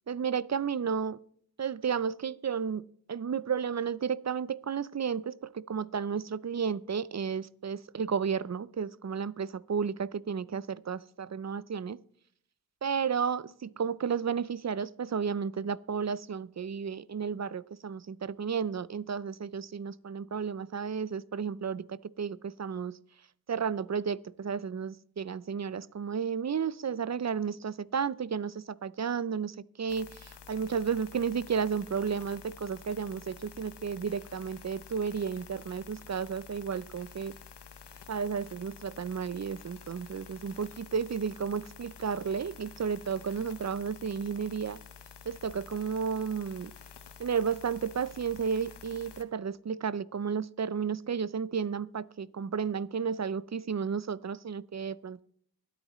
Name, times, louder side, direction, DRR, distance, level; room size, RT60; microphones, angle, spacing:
voice 1, 0.1-1.2 1.6-2.8 3.1-12.0 12.8-23.0 23.5-37.3 38.1-44.8 45.3-46.7 47.2-55.2, right 6 dB, 45° right, 0.5 m, -33 dB
sound 1, 29.9-49.2, left 7 dB, 85° left, 0.9 m, -50 dB
23.5 x 8.9 x 3.1 m
cardioid pair, 45°, 40 cm